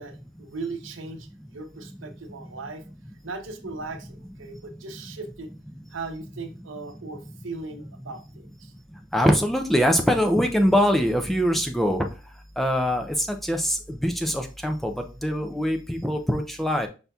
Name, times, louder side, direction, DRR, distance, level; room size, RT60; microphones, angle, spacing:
voice 1, 0.0-2.8 3.2-5.5 5.9-8.7, right 3 dB, 80° right, 7 dB, 0.7 m, -38 dB
voice 2, 9.1-12.0 12.6-13.0 13.5-13.8 14.0-14.9 15.2-16.9, equal, ahead, 4 dB, 0.4 m, -22 dB
5.6 x 3.9 x 2.3 m, 0.33 s
head